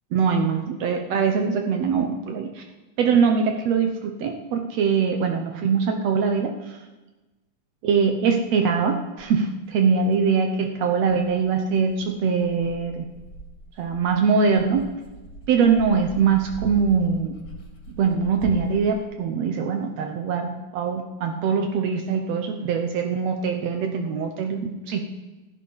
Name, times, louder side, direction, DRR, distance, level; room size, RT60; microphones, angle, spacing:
voice 1, 0.1-2.6 3.0-6.8 7.8-13.1 13.8-14.9 15.5-17.3 17.9-25.0, right 5 dB, 85° right, 4 dB, 1.4 m, -22 dB
Dog, 9.2-9.3 10.1-10.2 11.1-19.0, equal, 35° left, 2.7 m, -41 dB
15.0 x 11.0 x 5.6 m, 1.1 s
omnidirectional pair, 4.3 m